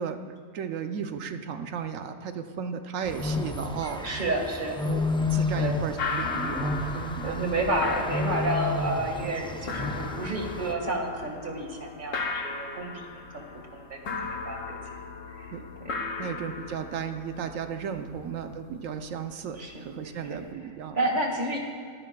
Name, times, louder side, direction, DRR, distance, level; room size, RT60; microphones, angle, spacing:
voice 1, 0.0-4.1 4.8-5.0 5.3-7.6 15.5-15.7 16.2-21.0, right 7 dB, 85° right, 7 dB, 1.1 m, -35 dB
sound 1, 3.0-10.7, left 3 dB, 10° left, 0.3 m, -31 dB
voice 2, 4.0-4.8 5.6-5.8 7.2-13.1 13.3-13.4 13.7-14.1 14.5-14.8 15.4-15.5 16.2-16.3 18.1-18.3 19.6-19.7 20.9-21.6, right 1 dB, 40° right, 1 dB, 1.9 m, -30 dB
sound 2, 6.0-20.5, left 4 dB, 75° left, 1.4 m, -37 dB
24.0 x 12.0 x 2.3 m, 2.3 s
omnidirectional pair, 1.3 m